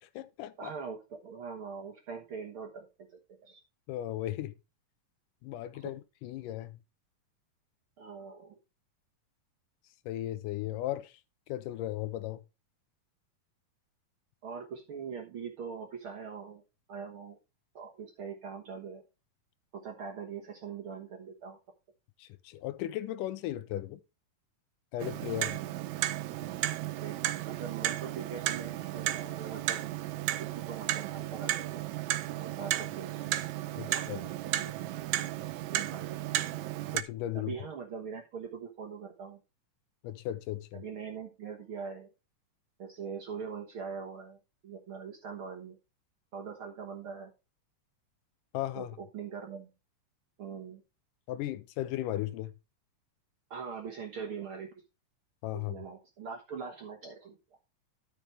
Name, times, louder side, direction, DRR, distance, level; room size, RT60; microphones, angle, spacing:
voice 1, 0.0-0.7 3.9-4.5 5.4-6.8 10.1-11.2 11.5-12.4 22.2-24.0 24.9-25.6 33.8-34.2 36.9-37.5 40.0-40.8 48.5-49.0 51.3-52.5 55.4-55.8, left 13 dB, 80° left, 2.1 m, -36 dB
voice 2, 0.6-3.6 5.7-5.9 8.0-8.6 14.4-16.6 16.9-17.4 17.7-19.0 19.7-21.6 27.0-27.2 27.4-30.0 30.4-31.8 32.4-33.2 33.9-34.8 35.6-36.2 37.3-39.4 40.7-42.1 42.8-45.8 46.3-47.3 48.7-49.7 50.4-50.8 53.5-54.7 55.5-57.4, right 6 dB, 55° right, 1.6 m, -42 dB
Clock, 25.0-37.0, right 14 dB, 85° right, 1.6 m, -34 dB
13.0 x 6.0 x 3.3 m
omnidirectional pair, 3.9 m